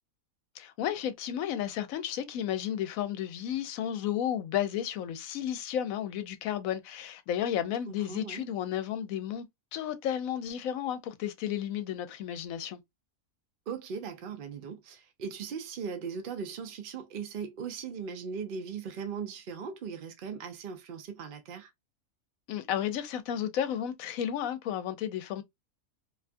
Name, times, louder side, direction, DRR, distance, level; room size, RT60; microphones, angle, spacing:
voice 1, 0.6-9.5 9.7-12.8 22.5-25.4, left 10 dB, 75° left, 1.0 m, -33 dB
voice 2, 7.9-8.5 13.7-21.7, right 6 dB, 65° right, 0.5 m, -39 dB
2.7 x 2.2 x 2.5 m
omnidirectional pair, 1.5 m